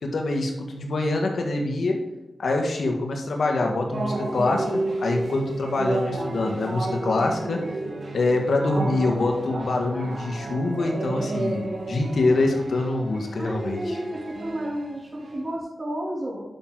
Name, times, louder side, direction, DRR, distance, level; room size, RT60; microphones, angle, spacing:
voice 1, 0.0-2.0 2.4-7.6 8.1-14.0, left 2 dB, 80° left, 1 dB, 1.7 m, -25 dB
sound 1, 3.9-15.6, right 2 dB, 65° right, 1.8 m, -32 dB
voice 2, 13.4-14.0 14.4-16.4, equal, 35° right, -2 dB, 3.2 m, -31 dB
11.0 x 6.2 x 4.0 m, 1.1 s
cardioid pair, 65°, 0 cm